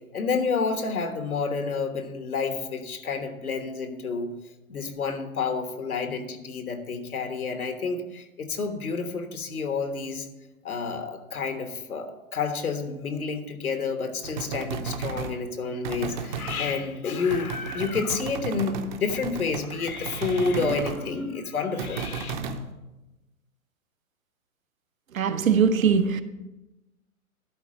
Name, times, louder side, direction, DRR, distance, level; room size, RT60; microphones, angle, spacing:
voice 1, 0.1-4.3 4.7-10.3 10.6-22.3, left 4 dB, 90° left, 1.4 m, -29 dB
sound 1, 14.2-15.4 15.8-16.6 17.3-21.0 21.8-22.6, right 5 dB, 35° right, 0.7 m, -34 dB
voice 2, 25.1-26.2, right 6 dB, 70° right, 0.9 m, -21 dB
12.0 x 4.2 x 6.3 m
hypercardioid pair, 135°, 42 cm